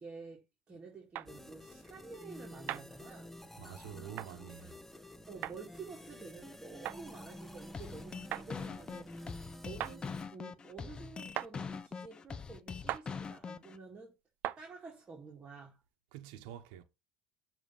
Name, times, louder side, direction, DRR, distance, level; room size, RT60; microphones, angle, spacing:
voice 1, 0.0-3.3 5.3-14.1 14.6-15.8, right 4 dB, 25° right, 2.1 m, -50 dB
sound 1, 1.2-1.3 2.7-2.9 4.2-4.3 5.4-5.6 6.8-7.0 8.3-8.5 9.8-10.0 11.4-11.5 12.9-13.1 14.4-14.6, right 13 dB, 50° right, 0.4 m, -37 dB
sound 2, 1.3-10.2, left 1 dB, 5° left, 1.0 m, -50 dB
voice 2, 3.6-4.8 16.1-16.8, right 11 dB, 70° right, 1.0 m, -47 dB
sound 3, 7.7-13.8, left 5 dB, 25° left, 0.5 m, -43 dB
7.0 x 3.0 x 5.6 m
supercardioid pair, 115°, 4 cm